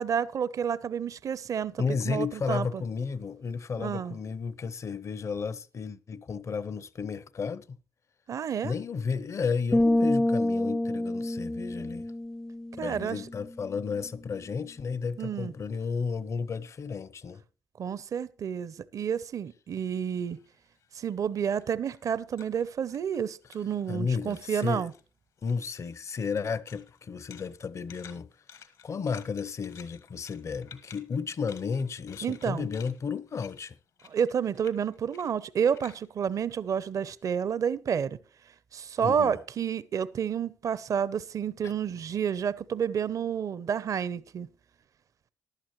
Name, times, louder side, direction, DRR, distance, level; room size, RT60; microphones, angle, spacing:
voice 1, 0.0-2.8 3.8-4.2 8.3-8.7 12.8-13.2 15.2-15.5 17.8-20.4 20.9-24.9 32.2-32.7 34.0-38.2 38.7-44.5, right 7 dB, 55° right, 0.6 m, -30 dB
voice 2, 1.8-7.8 8.6-12.1 12.8-17.4 23.9-24.9 25.4-28.3 28.8-33.8 39.0-39.4 41.6-41.7, left 5 dB, 50° left, 0.6 m, -33 dB
sound 1, 9.7-13.4, left 1 dB, 10° left, 0.4 m, -27 dB
sound 2, 20.1-24.0 24.3-25.0 25.4-37.2, left 7 dB, 75° left, 1.5 m, -54 dB
15.0 x 11.0 x 3.0 m
supercardioid pair, 55°, 7 cm